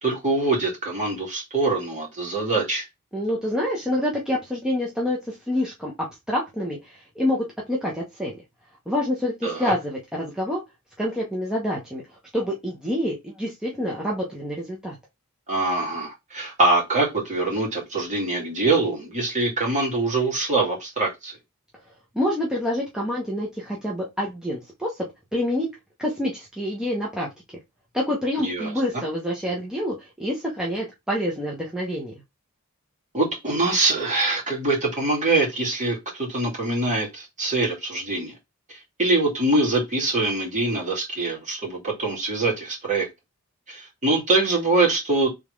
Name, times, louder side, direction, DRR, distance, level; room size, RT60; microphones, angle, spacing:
voice 1, 0.0-2.8 9.4-9.7 15.5-21.3 28.4-29.0 33.1-38.3 38.7-43.1 43.7-45.3, right 2 dB, 35° right, -3 dB, 2.4 m, -24 dB
voice 2, 3.1-8.4 8.9-10.6 11.0-12.0 12.3-15.0 22.1-25.7 26.0-27.3 27.9-32.1, left 1 dB, 5° right, -4 dB, 0.9 m, -27 dB
3.6 x 3.5 x 3.2 m, 0.20 s
head